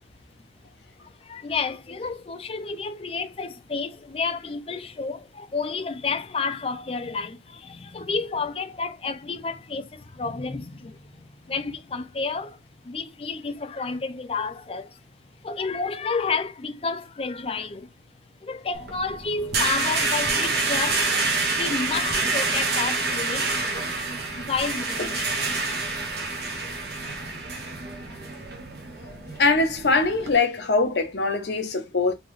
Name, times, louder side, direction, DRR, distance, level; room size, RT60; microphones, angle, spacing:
voice 1, 1.2-12.6 12.8-15.0 15.4-17.9 18.4-21.1 21.5-23.5 24.4-25.3 26.6-27.0, left 4 dB, 30° left, 0.4 m, -30 dB
sound 1, 18.7-30.4, right 3 dB, 65° right, 0.9 m, -27 dB
voice 2, 29.4-32.1, left 3 dB, 75° left, 0.9 m, -22 dB
3.7 x 3.0 x 3.1 m
head